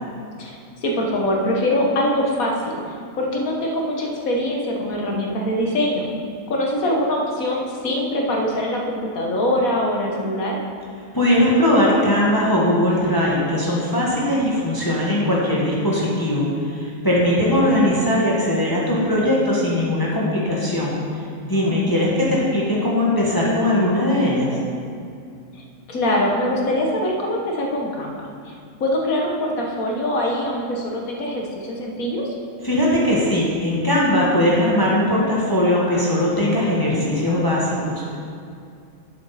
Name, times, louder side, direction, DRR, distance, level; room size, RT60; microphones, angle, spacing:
voice 1, 0.4-6.1 6.5-10.6 17.2-17.7 21.5-21.9 25.5-32.3, left 1 dB, 90° left, 0 dB, 1.8 m, -23 dB
voice 2, 11.1-20.9 21.4-24.5 32.6-38.2, left 1 dB, 15° left, -6 dB, 1.6 m, -20 dB
12.0 x 8.1 x 4.2 m, 2.4 s
omnidirectional pair, 1.4 m